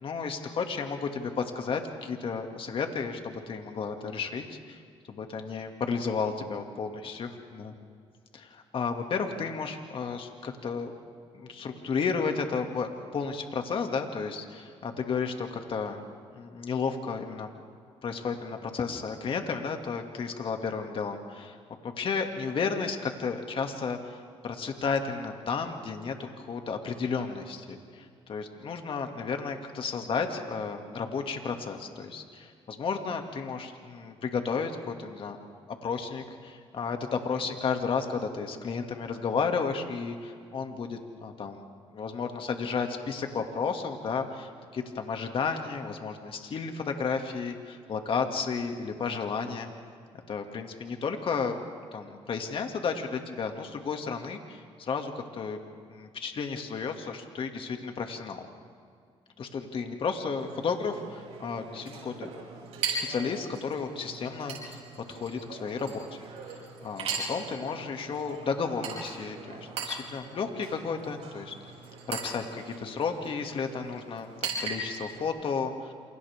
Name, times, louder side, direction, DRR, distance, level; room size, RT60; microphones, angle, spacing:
voice 1, 0.0-4.8 5.1-7.7 8.3-10.9 11.3-16.0 16.3-17.5 18.0-21.6 21.8-24.2 24.4-35.4 35.8-41.6 41.9-49.7 50.3-51.6 51.9-55.6 55.9-58.5 59.4-62.3 62.9-64.8 65.1-66.1 66.8-71.5 72.1-75.9, left 5 dB, 55° left, 4 dB, 2.4 m, -33 dB
Chink clink, 60.3-75.3, right 4 dB, 75° right, 7.6 m, -39 dB
29.0 x 28.0 x 3.7 m, 2.2 s
cardioid pair, 75°, 11 cm